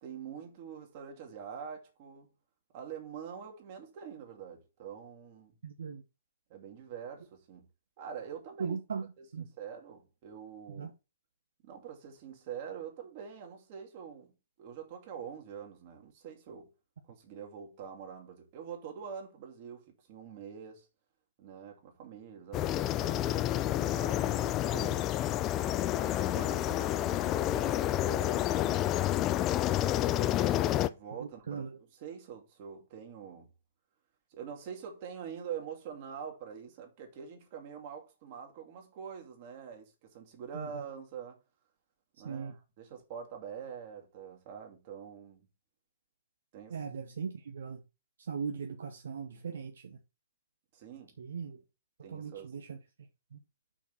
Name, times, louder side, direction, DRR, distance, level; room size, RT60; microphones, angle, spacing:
voice 1, 0.0-2.3 2.7-5.5 6.5-7.7 8.0-8.8 9.2-10.9 11.6-14.3 14.6-16.7 17.1-20.9 21.4-23.3 23.8-28.9 30.8-33.5 34.3-41.4 42.2-45.5 46.5-46.8 50.7-51.1 52.0-52.5, right 7 dB, 45° right, 2.4 m, -45 dB
voice 2, 5.6-6.0 8.6-9.5 10.7-10.9 31.5-31.8 40.5-40.8 42.2-42.6 46.7-47.8 48.2-50.0 51.2-51.6 52.1-52.8 53.3-53.4, right 6 dB, 65° right, 0.9 m, -39 dB
sound 1, 22.5-30.9, left 13 dB, 30° left, 0.5 m, -29 dB
6.0 x 4.7 x 6.0 m
figure-of-eight pair, 120°, 0 cm